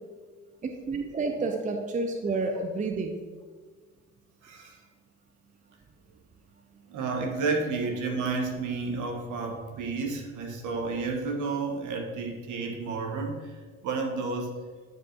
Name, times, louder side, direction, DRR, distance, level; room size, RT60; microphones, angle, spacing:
voice 1, 0.6-3.2, right 3 dB, 20° right, 4 dB, 0.7 m, -30 dB
voice 2, 4.4-4.8 6.9-14.5, right 4 dB, 55° right, 2 dB, 1.3 m, -31 dB
9.2 x 5.0 x 2.9 m, 1.5 s
hypercardioid pair, 55°, 37 cm